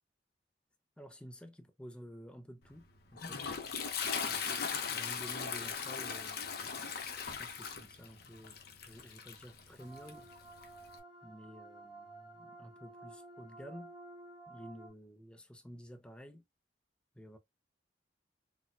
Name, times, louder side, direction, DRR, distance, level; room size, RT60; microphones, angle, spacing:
voice 1, 1.0-3.5 4.2-8.6 8.9-10.3 11.2-13.9 14.5-16.4 17.1-17.4, equal, 5° left, 0.4 m, -52 dB
Toilet flush, 2.7-11.0, left 6 dB, 60° left, 0.6 m, -39 dB
sound 1, 9.8-14.9, right 2 dB, 25° right, 1.4 m, -53 dB
4.1 x 2.1 x 2.4 m
head